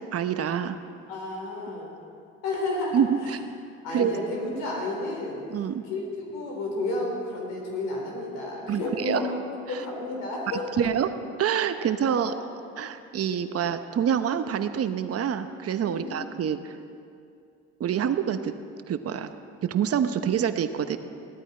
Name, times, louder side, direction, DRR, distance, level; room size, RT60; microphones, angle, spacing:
voice 1, 0.1-0.8 2.9-3.4 3.9-4.1 5.5-5.8 8.7-9.2 9.7-9.8 10.8-11.1 11.4-12.3 12.8-16.8 17.8-18.5 18.9-19.4 19.6-21.0, right 8 dB, 50° right, 10 dB, 0.9 m, -26 dB
voice 2, 1.1-1.9 2.4-3.3 3.8-5.4 5.9-9.4 9.7-10.9 11.8-12.5 13.5-13.6 15.8-16.5, left 2 dB, 80° left, -1 dB, 4.0 m, -32 dB
17.0 x 13.0 x 4.4 m, 2.4 s
supercardioid pair, 80°, 31 cm